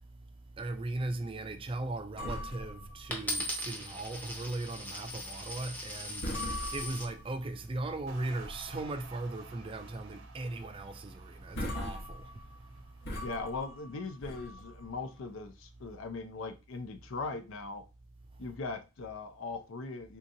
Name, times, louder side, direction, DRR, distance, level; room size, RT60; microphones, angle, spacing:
voice 1, 0.5-12.8, right 2 dB, 25° right, 0.4 m, -38 dB
sound 1, 2.2-4.0 4.3-4.5 5.0-5.2 5.7-5.9 6.2-7.5 8.0-8.9 9.3-9.4 9.8-10.0 10.3-10.4 11.1-11.2 11.4-15.1, left 1 dB, 65° left, 1.0 m, -41 dB
Coin (dropping), 3.1-7.1 7.8-8.2, left 1 dB, 10° left, 0.7 m, -39 dB
sound 2, 8.1-14.6, right 4 dB, 75° right, 0.7 m, -55 dB
voice 2, 13.2-17.8 18.4-20.2, left 3 dB, 85° left, 0.5 m, -39 dB
3.6 x 2.8 x 2.6 m
head